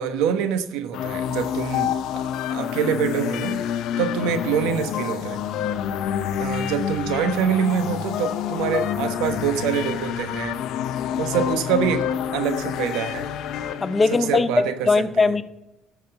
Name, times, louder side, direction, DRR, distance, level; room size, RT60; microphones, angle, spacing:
voice 1, 0.0-3.6 4.0-5.4 6.4-10.6 11.2-12.1 12.3-13.3 14.3-15.3, right 8 dB, 80° right, 10 dB, 1.0 m, -25 dB
sound 1, 0.9-14.4, left 9 dB, 70° left, 0.7 m, -27 dB
voice 2, 13.8-15.4, left 4 dB, 30° left, 13 dB, 0.7 m, -20 dB
12.0 x 7.2 x 5.7 m, 0.95 s
supercardioid pair, 75°, 0 cm